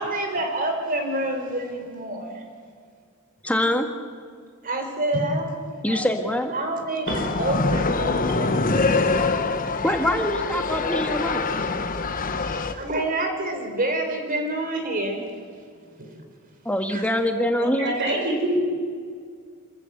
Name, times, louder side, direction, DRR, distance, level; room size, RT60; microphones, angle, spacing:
voice 1, 0.0-2.4 4.6-5.5 5.9-6.0 6.5-9.1 9.9-10.0 12.4-15.2 16.9-17.1, right 1 dB, 40° right, 4 dB, 3.9 m, -28 dB
voice 2, 3.4-3.9 5.8-6.5 9.8-11.4 16.6-17.9, left 1 dB, 5° left, 5 dB, 1.7 m, -24 dB
sound 1, 7.1-12.7, left 3 dB, 40° left, 1.1 m, -24 dB
voice 3, 17.6-18.6, right 1 dB, 55° right, 0 dB, 6.7 m, -25 dB
27.0 x 14.0 x 8.0 m, 2.1 s
head